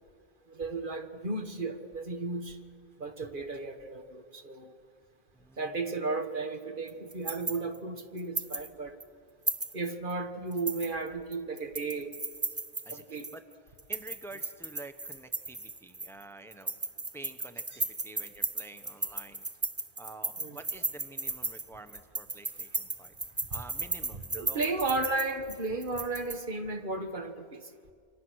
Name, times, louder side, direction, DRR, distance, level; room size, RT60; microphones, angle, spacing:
voice 1, 0.5-2.6 3.0-4.7 5.6-9.0 9.7-12.1 12.9-13.3 20.4-20.6 24.4-27.7, right 3 dB, 55° right, 6 dB, 1.7 m, -34 dB
voice 2, 5.3-5.8 12.8-16.8 17.1-19.5 20.0-23.1 23.5-24.8, right 2 dB, 5° left, 8 dB, 1.0 m, -49 dB
sound 1, 6.9-8.7 9.0-9.1 9.5-10.1 10.5-13.4 13.8-16.2 16.5-26.4, right 2 dB, 15° right, 0.6 m, -35 dB
29.0 x 25.5 x 6.4 m, 2.2 s
omnidirectional pair, 1.0 m